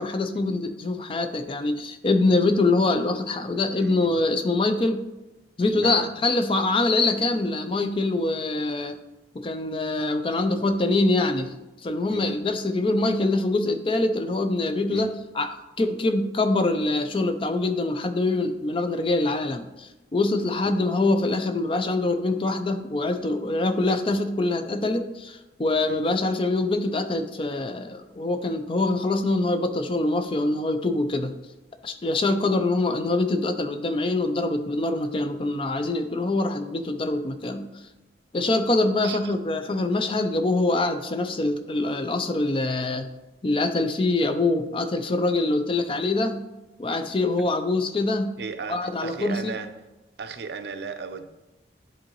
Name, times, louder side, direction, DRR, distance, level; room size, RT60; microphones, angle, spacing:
voice 1, 0.0-5.0 5.6-9.0 9.3-11.5 11.8-31.3 31.8-37.7 38.3-43.1 43.4-46.4 46.8-48.3 48.7-49.5, left 2 dB, 30° left, 8 dB, 0.4 m, -24 dB
voice 2, 3.8-4.2 5.7-6.1 12.1-12.4 14.9-15.2 20.6-20.8 25.9-26.2 39.0-39.3 48.4-49.7 50.2-51.3, right 5 dB, 70° right, 9 dB, 0.5 m, -36 dB
10.5 x 3.8 x 3.0 m, 1.0 s
head